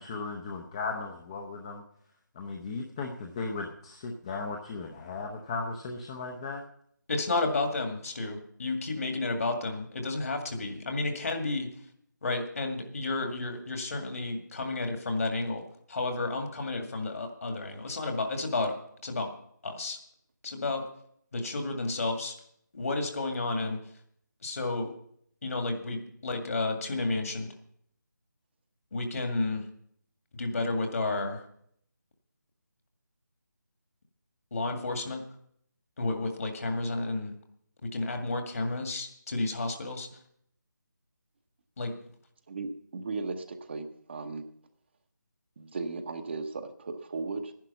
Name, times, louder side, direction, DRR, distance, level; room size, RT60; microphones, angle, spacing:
voice 1, 0.0-1.8 2.3-6.6, left 4 dB, 15° left, 2 dB, 0.7 m, -36 dB
voice 2, 7.1-11.7 12.2-15.6 15.9-18.8 19.0-19.3 19.6-20.0 20.4-20.8 21.3-22.4 22.7-23.8 24.4-24.9 25.4-27.5 28.9-29.6 30.3-31.4 34.5-35.2 36.0-37.3 37.9-40.1 41.8-41.9, left 2 dB, 50° left, 5 dB, 2.1 m, -31 dB
voice 3, 42.5-44.4 45.6-47.5, right 3 dB, 35° right, 7 dB, 0.9 m, -36 dB
11.5 x 10.5 x 5.6 m, 0.67 s
figure-of-eight pair, 160°, 10 cm